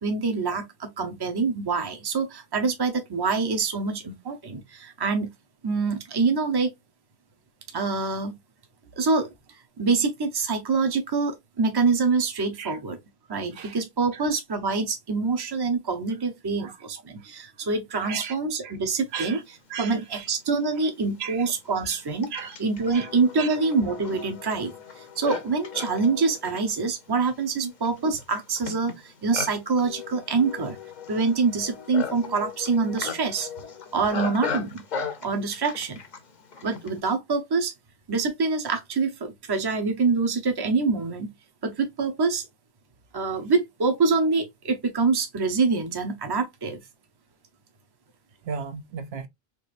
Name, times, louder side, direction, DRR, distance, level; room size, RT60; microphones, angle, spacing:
voice 1, 0.0-5.3 5.6-6.7 7.7-8.3 9.0-9.3 9.8-13.0 13.3-19.4 19.8-22.3 22.6-30.8 31.1-33.5 33.9-34.8 35.2-36.0 36.6-37.7 38.1-41.3 41.6-42.5 43.1-46.8, right 4 dB, 25° right, 0.7 m, -25 dB
voice 2, 18.0-18.4 18.6-18.7 19.1-19.4 19.7-20.3 21.2-21.4 21.8-21.9 22.3-22.6 22.9-23.1 23.4-23.6 27.6-27.7 48.4-49.3, right 6 dB, 75° right, 0.9 m, -35 dB
Livestock farm animals working animals, 20.2-20.3 21.1-37.0, left 6 dB, 50° left, 0.8 m, -37 dB
4.5 x 2.6 x 2.5 m
omnidirectional pair, 1.1 m